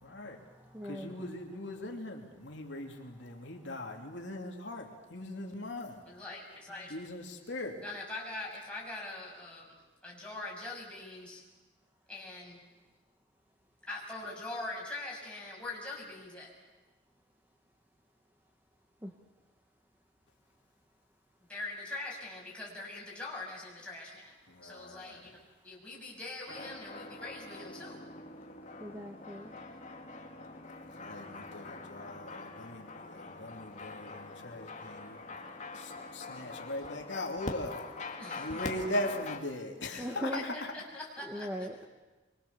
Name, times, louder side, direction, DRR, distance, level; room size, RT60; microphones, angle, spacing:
voice 1, 0.0-0.4 0.8-6.0 6.9-7.8 24.5-25.2 30.9-35.5 35.7-37.7 38.3-40.7, left 1 dB, 75° left, 1 dB, 3.0 m, -40 dB
voice 2, 0.7-1.1 19.0-19.1 28.8-29.5 40.0-40.4 41.3-41.9, equal, 10° right, 3 dB, 1.3 m, -39 dB
voice 3, 6.1-6.9 7.8-9.7 10.0-11.4 12.1-12.6 13.9-16.5 21.5-24.3 24.6-25.4 25.6-28.0 38.2-38.6 39.9-41.7, left 2 dB, 5° left, -4 dB, 6.8 m, -43 dB
sound 1, 26.5-39.4, left 3 dB, 40° left, 2.3 m, -44 dB
25.0 x 24.0 x 7.1 m, 1.2 s
head